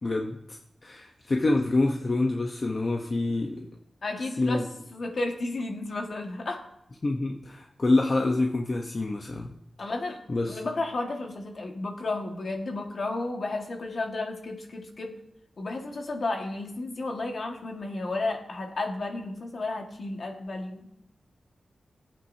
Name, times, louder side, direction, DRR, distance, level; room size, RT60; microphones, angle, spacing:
voice 1, 0.0-3.7 4.4-4.6 7.0-9.5 10.3-10.6, left 2 dB, 40° left, 1 dB, 0.9 m, -27 dB
voice 2, 4.0-4.6 4.9-6.6 9.8-10.2 10.5-15.1 15.6-20.8, left 2 dB, 55° left, 2 dB, 1.7 m, -32 dB
19.5 x 8.6 x 2.8 m, 0.77 s
wide cardioid pair, 105°, 0 cm